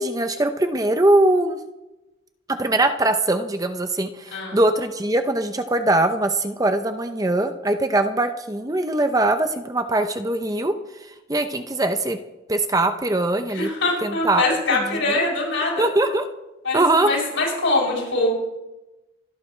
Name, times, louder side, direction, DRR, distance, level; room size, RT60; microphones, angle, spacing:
voice 1, 0.0-1.6 2.5-10.7 11.3-12.2 12.5-13.7 14.0-15.3 15.8-16.3 16.7-17.1, right 2 dB, 15° right, 8 dB, 0.7 m, -21 dB
voice 2, 13.5-15.8 16.6-18.3, left 2 dB, 75° left, -2 dB, 6.9 m, -23 dB
26.0 x 12.0 x 3.3 m, 1.0 s
head